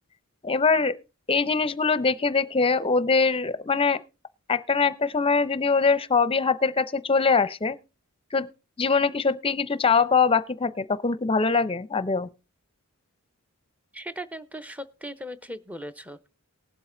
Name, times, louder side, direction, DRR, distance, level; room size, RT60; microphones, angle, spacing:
voice 1, 0.4-1.0 1.3-4.0 4.5-7.8 8.3-8.5 8.8-12.3, left 4 dB, 25° left, 0.6 m, -23 dB
voice 2, 13.9-16.3, equal, 5° right, 0.7 m, -38 dB
18.5 x 7.7 x 3.8 m
head